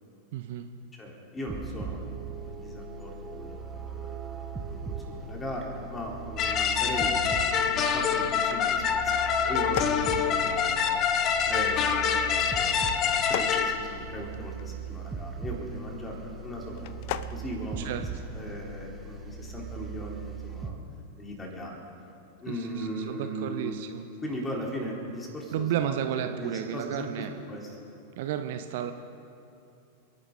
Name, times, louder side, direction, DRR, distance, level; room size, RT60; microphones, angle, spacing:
voice 1, 0.3-0.7 17.8-18.2 22.5-24.1 25.5-27.3 28.2-28.9, right 10 dB, 50° right, 8 dB, 0.8 m, -32 dB
voice 2, 0.9-7.2 7.5-11.0 11.5-17.0 17.3-17.9 18.3-20.8 21.2-21.8 22.4-23.8 24.2-27.7, equal, 15° left, -1 dB, 3.7 m, -38 dB
sound 1, 1.5-20.7, right 5 dB, 10° right, 1.5 m, -39 dB
sound 2, 6.4-13.8, left 7 dB, 30° left, 1.0 m, -26 dB
sound 3, 9.5-10.9 13.1-14.6 16.7-17.4, left 12 dB, 50° left, 0.5 m, -36 dB
30.0 x 11.0 x 3.9 m, 2.7 s
figure-of-eight pair, 90°, 0 cm